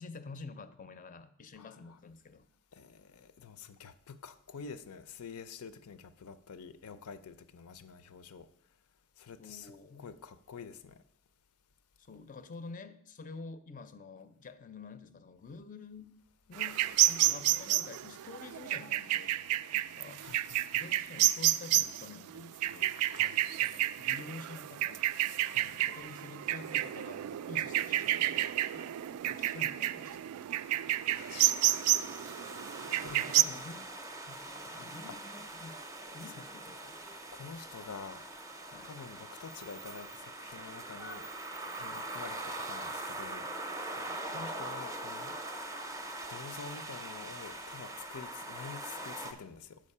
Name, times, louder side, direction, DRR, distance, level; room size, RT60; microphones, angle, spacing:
voice 1, 0.0-2.5 9.4-10.1 12.0-16.2 16.5-19.4 19.7-20.3 20.7-22.9 23.6-25.0 25.6-29.0 29.3-30.4 32.9-33.9 34.3-35.9 36.1-37.0 38.7-38.9 41.9-42.1 44.0-44.2, left 4 dB, 35° left, 11 dB, 0.5 m, -49 dB
voice 2, 2.7-8.5 9.2-11.0 20.2-20.8 23.0-23.4 25.4-25.7 31.1-32.0 33.0-33.7 34.6-35.2 37.3-38.2 38.8-41.3 41.7-43.5 44.3-45.3 46.3-49.8, left 6 dB, 85° left, 13 dB, 0.5 m, -48 dB
sound 1, 16.5-33.4, right 14 dB, 85° right, 0.3 m, -30 dB
sound 2, 30.9-49.3, right 2 dB, 15° right, 0.5 m, -42 dB
7.5 x 5.2 x 5.4 m, 0.68 s
head